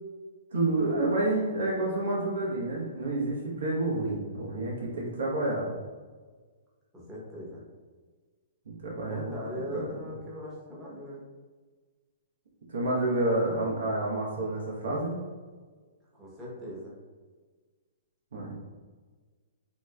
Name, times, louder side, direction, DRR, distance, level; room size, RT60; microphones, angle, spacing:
voice 1, 0.5-5.7 8.7-9.3 9.7-9.8 12.7-15.2 18.3-18.6, right 2 dB, 80° right, -3 dB, 0.9 m, -29 dB
voice 2, 6.9-7.6 9.0-11.2 16.1-16.9, left 1 dB, 10° right, -6 dB, 1.0 m, -39 dB
3.0 x 2.8 x 2.3 m, 1.4 s
hypercardioid pair, 130°, 0 cm